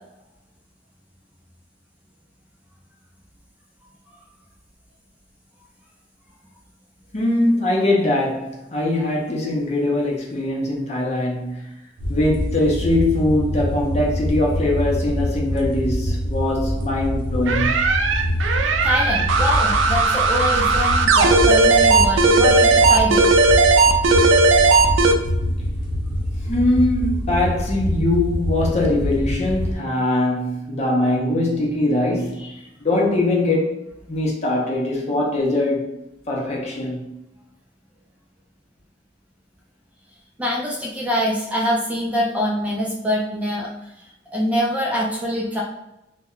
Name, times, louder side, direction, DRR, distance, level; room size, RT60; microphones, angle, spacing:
voice 1, 7.1-11.7 12.1-17.8 26.5-32.5 32.8-33.8 34.1-35.9 36.3-37.0, left 1 dB, 35° left, 0.6 m, -21 dB
sound 1, 12.0-29.8, equal, 45° right, 0.8 m, -25 dB
sound 2, 17.5-25.1, right 3 dB, 80° right, 0.3 m, -16 dB
voice 2, 18.8-23.3 32.4-32.5 40.4-43.7 44.3-45.6, equal, 10° right, 0.4 m, -24 dB
2.1 x 2.1 x 3.6 m
head